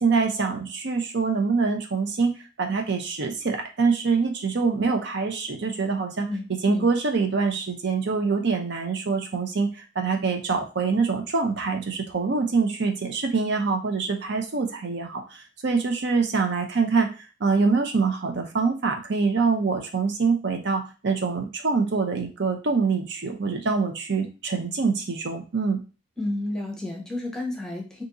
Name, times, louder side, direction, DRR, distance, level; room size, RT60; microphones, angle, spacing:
voice 1, 0.0-6.3 6.6-17.1 17.4-25.8, right 4 dB, 65° right, 3 dB, 0.6 m, -25 dB
voice 2, 6.3-6.8 26.2-28.0, left 2 dB, 5° left, -1 dB, 0.8 m, -31 dB
2.8 x 2.6 x 3.7 m, 0.32 s
head